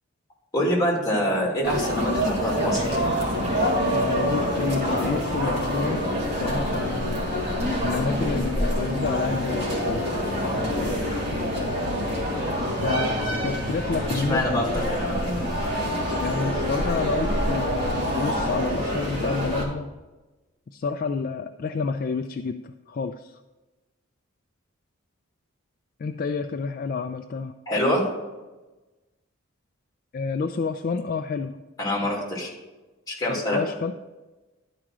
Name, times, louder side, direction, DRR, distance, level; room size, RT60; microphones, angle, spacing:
voice 1, 0.5-2.9 14.3-14.6 14.9-15.5 27.7-28.0 31.8-32.5 33.1-33.6, equal, 15° left, -2 dB, 2.6 m, -25 dB
sound 1, 1.6-19.6, equal, 30° right, 2.5 m, -26 dB
voice 2, 3.8-6.0 6.3-7.3 7.8-10.1 12.8-14.7 16.2-19.9 20.7-23.4 26.0-27.5 30.1-31.6 32.0-32.1 33.3-33.9, left 4 dB, 40° left, 7 dB, 0.3 m, -29 dB
11.5 x 4.9 x 6.1 m, 1.2 s
head